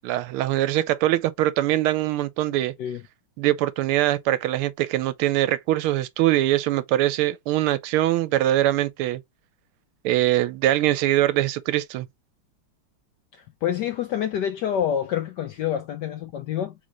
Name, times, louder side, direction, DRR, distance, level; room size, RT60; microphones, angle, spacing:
voice 1, 0.0-2.7 3.4-9.2 10.0-12.1, right 14 dB, 85° right, 1.5 m, -22 dB
voice 2, 13.3-16.7, left 9 dB, 80° left, 1.0 m, -27 dB
3.9 x 3.7 x 3.0 m
omnidirectional pair, 2.4 m